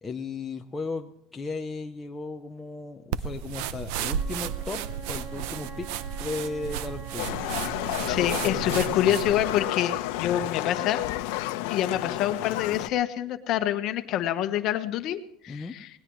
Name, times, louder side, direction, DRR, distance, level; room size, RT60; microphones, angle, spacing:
voice 1, 0.0-4.8 5.1-5.9 6.2-7.4 8.5-9.1 15.5-15.7, left 3 dB, 10° left, 2 dB, 0.7 m, -36 dB
sound 1, 3.1-9.6, right 8 dB, 75° right, 0.8 m, -33 dB
Wind instrument woodwind instrument, 3.9-8.9, right 7 dB, 55° right, 3.0 m, -44 dB
Livestock farm animals working animals, 7.2-12.9, left 15 dB, 85° left, 0.9 m, -31 dB
voice 2, 8.1-11.0 11.7-15.9, left 11 dB, 40° left, 8 dB, 1.2 m, -27 dB
20.0 x 19.0 x 3.2 m, 0.70 s
cardioid pair, 180°, 0 cm